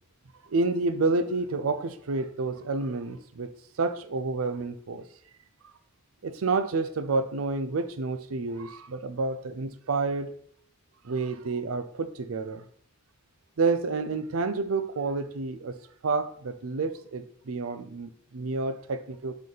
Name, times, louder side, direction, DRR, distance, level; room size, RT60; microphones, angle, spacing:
voice 1, 0.5-3.5 3.8-5.0 6.2-10.3 11.0-12.6 13.6-15.8 16.0-19.3, right 3 dB, 85° right, 0.5 m, -29 dB
7.6 x 3.5 x 3.9 m
head